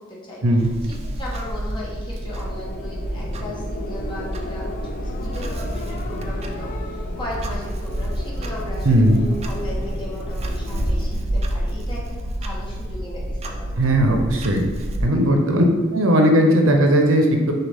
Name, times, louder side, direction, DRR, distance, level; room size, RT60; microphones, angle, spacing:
voice 1, 0.1-0.4 0.8-9.0 9.4-14.0 15.2-15.5, left 1 dB, 25° left, -5 dB, 1.1 m, -37 dB
Clock, 0.6-15.1, right 1 dB, 30° right, 0.4 m, -28 dB
sound 1, 2.0-11.3, left 2 dB, 40° left, 0.4 m, -36 dB
voice 2, 8.8-9.2 13.8-14.7 15.0-15.6 15.9-17.5, right 1 dB, 70° right, 3 dB, 0.6 m, -17 dB
6.4 x 2.3 x 3.5 m, 1.5 s
head